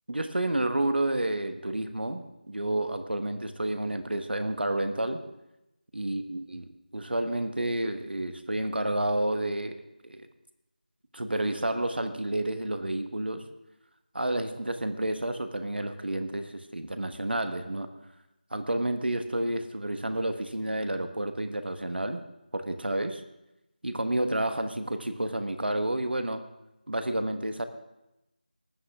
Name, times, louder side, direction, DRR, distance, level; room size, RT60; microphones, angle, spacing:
voice 1, 0.1-5.2 5.9-6.6 6.9-10.3 11.1-13.4 14.1-17.9 18.5-22.2 22.5-23.2 23.8-26.4 26.9-27.6, right 1 dB, 85° right, 8 dB, 1.2 m, -30 dB
20.0 x 8.7 x 3.6 m, 0.92 s
figure-of-eight pair, 175°, 5 cm